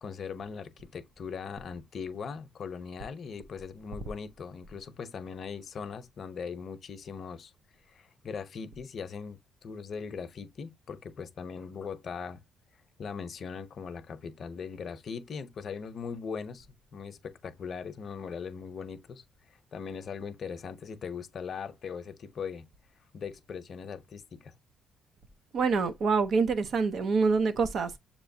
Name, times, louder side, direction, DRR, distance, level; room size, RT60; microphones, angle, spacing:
voice 1, 0.0-7.5 7.9-12.4 13.0-16.7 16.9-19.2 19.7-22.7 23.1-24.5, left 6 dB, 55° left, 0.7 m, -40 dB
voice 2, 25.5-28.0, right 4 dB, 60° right, 0.7 m, -26 dB
6.7 x 3.0 x 2.7 m
cardioid pair, 90°, 0 cm